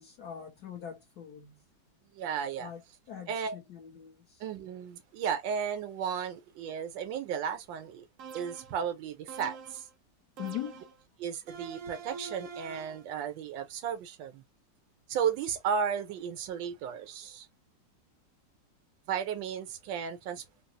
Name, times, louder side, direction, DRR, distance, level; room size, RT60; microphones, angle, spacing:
voice 1, 0.0-1.7 2.6-2.8 3.1-4.4 10.4-10.8, left 10 dB, 65° left, 1.2 m, -42 dB
voice 2, 2.1-2.7 3.3-3.6 4.4-8.1 8.3-9.9 11.2-14.4 15.1-17.5 19.1-20.4, right 7 dB, 85° right, 1.5 m, -34 dB
sound 1, 8.2-8.8 9.3-9.9 10.4-11.0 11.5-13.1, right 5 dB, 65° right, 0.8 m, -45 dB
3.8 x 2.0 x 2.6 m
omnidirectional pair, 2.0 m